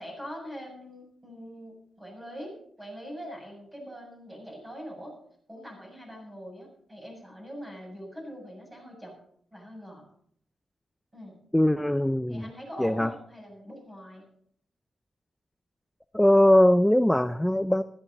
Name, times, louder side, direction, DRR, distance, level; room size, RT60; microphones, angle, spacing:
voice 1, 0.0-5.2 5.5-9.1 9.5-10.0 11.1-11.4 12.3-14.3, equal, 10° right, 0 dB, 7.5 m, -43 dB
voice 2, 11.5-12.5 12.8-13.1 16.1-17.8, left 1 dB, 5° left, 11 dB, 0.5 m, -21 dB
16.0 x 14.5 x 4.0 m, 0.65 s
cardioid pair, 110°, 0 cm